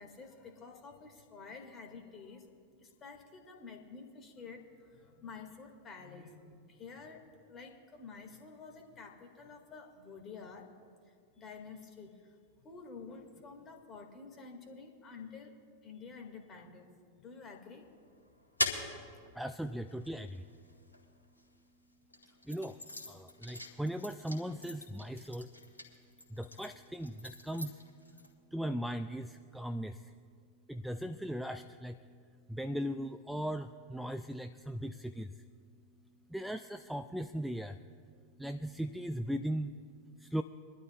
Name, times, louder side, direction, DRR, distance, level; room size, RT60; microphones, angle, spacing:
voice 1, 0.0-2.5 2.8-10.7 11.4-15.6 15.8-17.9 18.9-19.0 19.9-20.0, left 4 dB, 25° left, 3 dB, 2.2 m, -50 dB
sound 1, 17.8-21.4 22.0-28.3, left 1 dB, 80° left, 1.7 m, -42 dB
voice 2, 19.4-20.4 22.5-22.8 23.1-25.5 26.3-27.8 28.5-30.0 30.7-32.0 32.5-35.3 36.3-37.8 38.4-39.7 40.2-40.4, equal, ahead, 10 dB, 0.4 m, -38 dB
24.0 x 12.0 x 2.4 m, 2.2 s
figure-of-eight pair, 90°, 0 cm